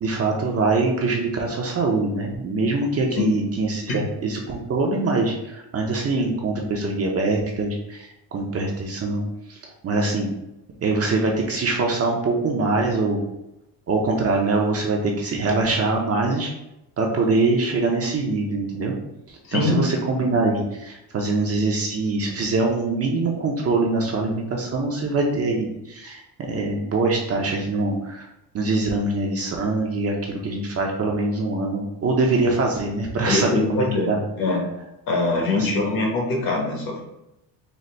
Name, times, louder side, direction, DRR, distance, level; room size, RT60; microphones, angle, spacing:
voice 1, 0.0-9.6 9.8-10.3 10.8-13.2 13.9-16.5 17.0-18.9 19.3-26.2 26.5-28.3 28.5-34.2 35.5-35.7, right 3 dB, 35° right, 0 dB, 0.5 m, -23 dB
voice 2, 33.3-34.1 34.4-34.6 35.1-37.0, left 3 dB, 55° left, 0 dB, 1.1 m, -23 dB
4.0 x 2.1 x 3.2 m, 0.90 s
cardioid pair, 135°, 43 cm